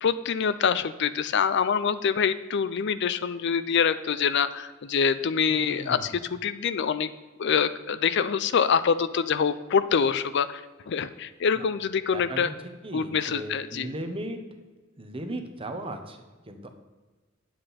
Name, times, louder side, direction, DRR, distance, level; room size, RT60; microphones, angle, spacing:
voice 1, 0.0-7.1 7.4-12.5 12.9-13.9, left 6 dB, 60° left, 13 dB, 0.4 m, -25 dB
voice 2, 5.5-6.1 11.5-11.6 12.1-12.5 12.8-14.4 15.0-16.7, right 1 dB, 25° right, 6 dB, 1.0 m, -36 dB
9.7 x 7.6 x 4.2 m, 1.3 s
head